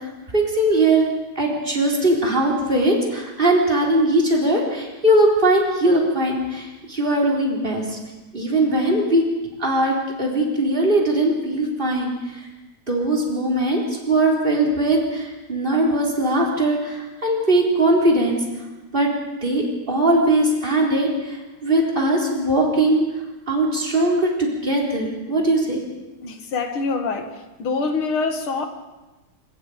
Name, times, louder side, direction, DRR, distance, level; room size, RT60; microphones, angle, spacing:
voice 1, 0.3-1.1 1.4-8.0 8.3-9.2 9.6-12.1 12.9-18.4 18.9-19.1 19.4-21.4 21.6-23.0 23.5-25.8, right 1 dB, 25° right, -1 dB, 4.1 m, -20 dB
voice 2, 26.2-27.3 27.6-28.7, left 4 dB, 75° left, 6 dB, 2.6 m, -25 dB
24.5 x 21.5 x 5.1 m, 1.1 s
omnidirectional pair, 2.3 m